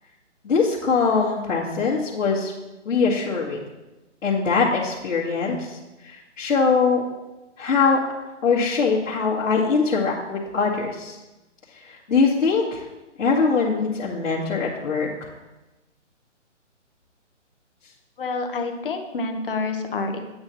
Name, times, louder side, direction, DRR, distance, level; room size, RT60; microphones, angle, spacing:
voice 1, 0.4-2.5 2.9-3.6 4.2-5.8 6.0-7.1 7.6-8.0 8.4-11.2 11.8-12.8 13.2-15.3, left 4 dB, 75° left, -8 dB, 2.1 m, -22 dB
voice 2, 18.2-20.2, left 3 dB, 45° left, 5 dB, 1.1 m, -28 dB
8.7 x 8.0 x 3.0 m, 1.1 s
hypercardioid pair, 160°, 37 cm